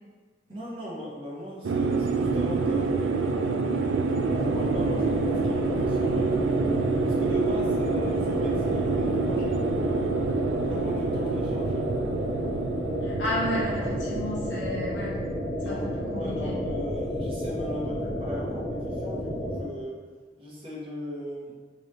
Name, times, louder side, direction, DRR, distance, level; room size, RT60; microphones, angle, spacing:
voice 1, 0.5-6.4 7.0-10.2 10.6-11.8 15.6-20.0 20.4-21.5, left 1 dB, 30° right, -6 dB, 0.9 m, -38 dB
sound 1, 1.6-16.5, right 4 dB, 85° right, 0.3 m, -27 dB
sound 2, 4.2-19.6, equal, 5° left, 1.1 m, -32 dB
voice 2, 13.0-15.2 15.6-16.6, left 1 dB, 80° left, -6 dB, 1.2 m, -32 dB
3.8 x 3.1 x 2.9 m, 1.5 s
head